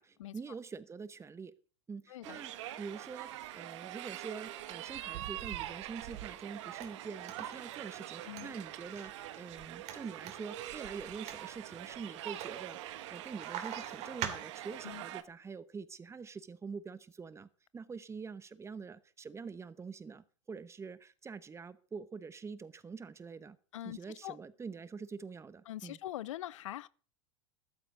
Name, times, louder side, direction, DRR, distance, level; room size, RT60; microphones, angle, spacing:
voice 1, 0.0-1.5 1.9-23.6 23.8-26.0, right 5 dB, 15° right, 0.9 m, -45 dB
sound 1, 2.2-15.2, right 13 dB, 65° right, 1.2 m, -44 dB
sound 2, 6.4-14.9, right 9 dB, 45° right, 2.6 m, -46 dB
voice 2, 23.7-24.4 25.7-26.9, left 14 dB, 75° left, 0.5 m, -43 dB
14.0 x 12.0 x 3.8 m
hypercardioid pair, 100°, 16 cm